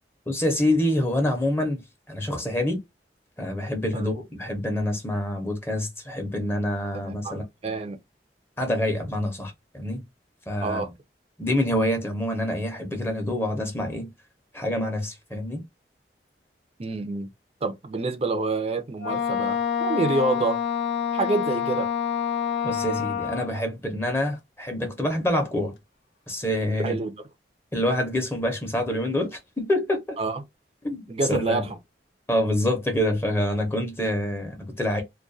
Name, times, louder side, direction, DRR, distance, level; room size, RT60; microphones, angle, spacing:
voice 1, 0.3-1.8 2.1-2.8 3.4-7.4 8.6-10.0 10.5-10.8 11.4-14.1 14.5-15.6 22.6-25.7 26.3-27.0 27.7-30.2 30.8-31.0 31.3-31.6 32.3-35.0, left 1 dB, 15° left, 0.6 m, -26 dB
voice 2, 6.9-8.0 10.6-10.9 16.8-17.3 17.6-20.6 21.1-21.9 26.8-27.2 30.2-30.4 31.1-31.8, right 3 dB, 35° right, 0.4 m, -27 dB
Wind instrument woodwind instrument, 19.0-23.5, left 8 dB, 85° left, 0.4 m, -27 dB
2.3 x 2.2 x 2.5 m
head